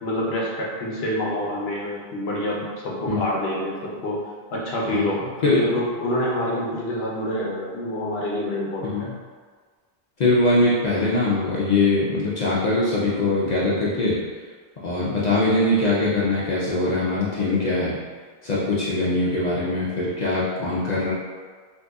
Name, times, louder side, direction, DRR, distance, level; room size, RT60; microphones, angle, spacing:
voice 1, 0.0-4.2 4.5-9.1, left 1 dB, 85° left, -4 dB, 1.0 m, -27 dB
voice 2, 4.9-5.7 8.8-9.1 10.2-14.2 14.8-18.0 18.4-21.1, left 2 dB, 50° left, -7 dB, 0.6 m, -22 dB
3.8 x 2.6 x 2.3 m, 1.6 s
omnidirectional pair, 1.0 m